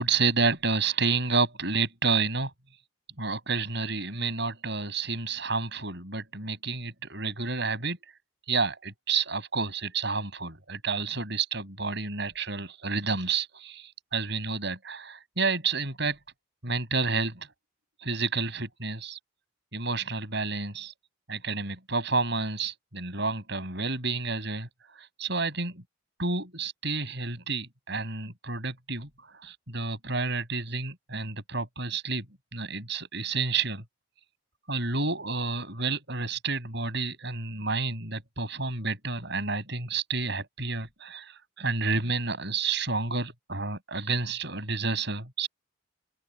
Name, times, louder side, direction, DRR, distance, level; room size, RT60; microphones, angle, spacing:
voice 1, 0.0-2.5 3.2-8.0 8.5-16.2 16.6-17.5 18.0-19.2 19.7-20.9 21.3-24.7 24.9-25.8 26.2-32.3 32.5-33.8 34.7-45.5, right 4 dB, 55° right, 7.5 m, -30 dB
open air
head